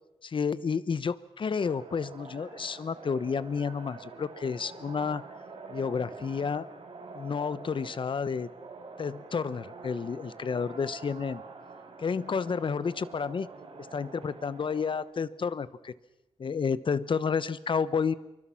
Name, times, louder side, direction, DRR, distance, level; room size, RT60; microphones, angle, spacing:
voice 1, 0.2-5.2 5.7-6.7 7.1-8.5 9.0-11.4 12.0-13.5 13.9-15.9 16.4-18.1, left 6 dB, 55° left, 16 dB, 1.0 m, -30 dB
sound 1, 1.6-15.0, right 4 dB, 70° right, 4.6 m, -46 dB
27.0 x 24.0 x 5.9 m, 0.93 s
wide cardioid pair, 130°, 10 cm